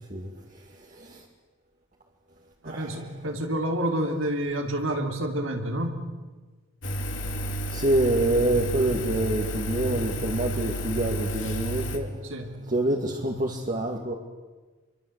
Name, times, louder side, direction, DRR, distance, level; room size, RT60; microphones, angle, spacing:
voice 1, 0.9-1.2 2.6-3.0 7.7-12.1 12.7-14.1, right 1 dB, 40° right, -1 dB, 2.5 m, -26 dB
voice 2, 2.6-6.0 12.2-12.6, right 1 dB, 75° right, 3 dB, 3.4 m, -29 dB
Engine, 6.8-12.0, right 1 dB, 65° left, 3.2 m, -31 dB
28.0 x 24.0 x 8.3 m, 1.3 s
head